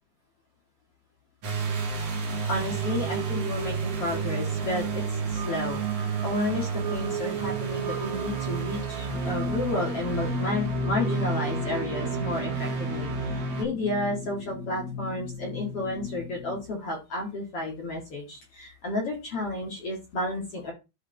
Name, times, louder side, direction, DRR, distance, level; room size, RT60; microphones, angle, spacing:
sound 1, 1.4-13.6, right 7 dB, 55° right, 1.8 m, -31 dB
voice 1, 2.5-20.7, left 2 dB, 45° left, -1 dB, 1.9 m, -32 dB
sound 2, 9.1-16.6, left 4 dB, 75° left, 5.9 m, -34 dB
14.0 x 4.8 x 3.4 m, 0.27 s
omnidirectional pair, 5.5 m